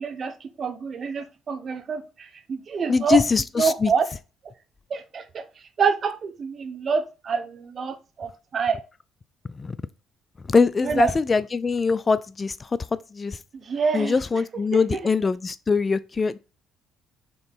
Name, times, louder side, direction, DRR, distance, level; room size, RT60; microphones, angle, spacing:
voice 1, 0.0-3.2 3.6-4.1 4.9-5.4 5.8-8.8 10.8-11.1 13.5-14.1 14.7-15.1, right 6 dB, 45° right, 1.0 m, -26 dB
voice 2, 2.9-3.9 9.5-9.8 10.4-13.4 13.9-16.4, left 4 dB, 30° left, 0.3 m, -23 dB
4.6 x 3.8 x 5.3 m
cardioid pair, 95°, 0 cm